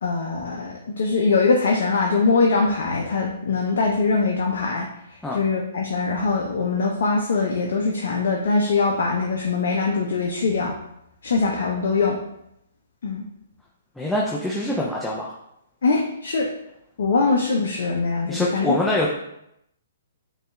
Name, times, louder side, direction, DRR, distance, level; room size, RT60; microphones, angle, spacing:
voice 1, 0.0-4.9 5.3-10.7 11.2-12.2 13.0-13.2 15.8-16.5 17.0-18.8, left 4 dB, 65° left, 0 dB, 0.5 m, -22 dB
voice 2, 14.0-15.3 18.3-19.2, left 1 dB, 5° left, -4 dB, 0.5 m, -24 dB
6.5 x 2.4 x 2.2 m, 0.80 s
hypercardioid pair, 130°, 0 cm